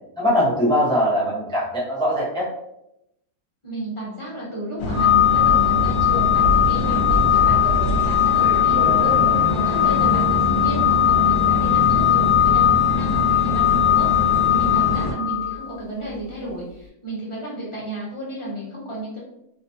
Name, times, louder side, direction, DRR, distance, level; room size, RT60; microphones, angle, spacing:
voice 1, 0.2-2.5 8.7-9.4, equal, 5° left, -7 dB, 0.5 m, -22 dB
voice 2, 3.6-19.2, equal, 25° left, -6 dB, 0.8 m, -32 dB
sound 1, 4.8-15.1, left 1 dB, 70° left, 0.9 m, -24 dB
Organ, 4.9-15.7, left 11 dB, 70° right, 0.7 m, -19 dB
2.9 x 2.2 x 2.6 m, 0.82 s
omnidirectional pair, 1.7 m